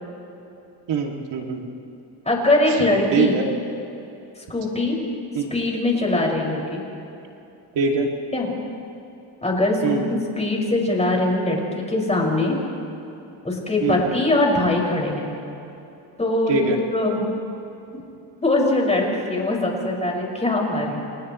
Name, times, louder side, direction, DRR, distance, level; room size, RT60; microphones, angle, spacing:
voice 1, 0.9-1.6 2.7-2.8 3.1-3.4 5.3-5.5 7.7-8.1 9.8-10.1 13.8-14.0 16.5-16.8, right 4 dB, 75° right, 0 dB, 2.7 m, -23 dB
voice 2, 2.2-3.3 4.5-5.0 5.5-6.8 8.3-8.5 9.4-12.6 13.4-15.3 16.2-17.2 18.4-21.0, left 2 dB, 15° left, -2 dB, 5.9 m, -22 dB
29.5 x 29.5 x 3.2 m, 2.9 s
cardioid pair, 105°, 44 cm